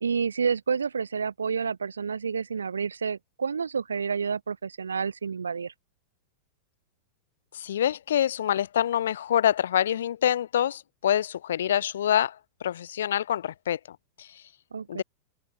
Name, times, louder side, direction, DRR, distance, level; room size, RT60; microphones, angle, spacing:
voice 1, 0.0-5.7 14.7-15.0, right 6 dB, 75° right, 1.1 m, -29 dB
voice 2, 7.5-12.4 12.6-14.3 14.9-15.0, left 10 dB, 60° left, 0.6 m, -26 dB
figure-of-eight pair, 90°, 0 cm